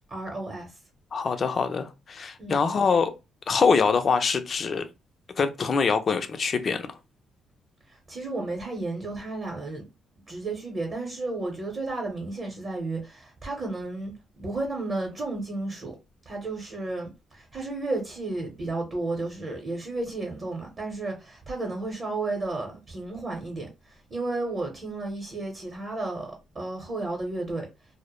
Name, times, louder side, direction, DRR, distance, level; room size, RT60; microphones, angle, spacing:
voice 1, 0.1-0.8 2.4-2.6 7.9-9.8 10.3-16.0 16.3-27.7, right 2 dB, 40° right, 0.7 m, -33 dB
voice 2, 1.1-3.1 3.5-4.9 5.4-7.0, left 5 dB, 45° left, 0.4 m, -24 dB
2.1 x 2.0 x 2.9 m
cardioid pair, 90°, 0 cm